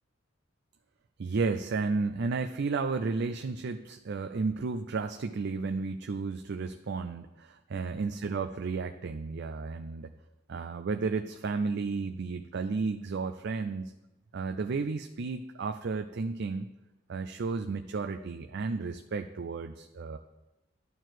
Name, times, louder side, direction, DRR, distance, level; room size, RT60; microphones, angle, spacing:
voice 1, 1.2-10.1 10.5-13.9 14.3-16.7 17.1-20.2, right 4 dB, 55° right, 7 dB, 0.4 m, -33 dB
11.0 x 4.6 x 7.7 m, 1.0 s
head